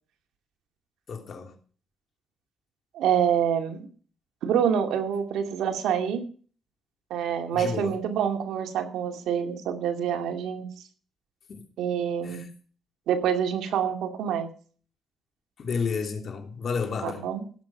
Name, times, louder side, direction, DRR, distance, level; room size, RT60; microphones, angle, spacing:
voice 1, 1.1-1.5 7.5-7.9 11.5-11.6 12.2-12.5 15.6-17.2, left 5 dB, 50° left, 3.0 m, -31 dB
voice 2, 2.9-3.9 4.4-6.2 7.1-10.7 11.8-12.5 13.1-14.5 17.0-17.4, right 8 dB, 80° right, 2.4 m, -26 dB
17.0 x 6.9 x 5.8 m
cardioid pair, 90°, 0 cm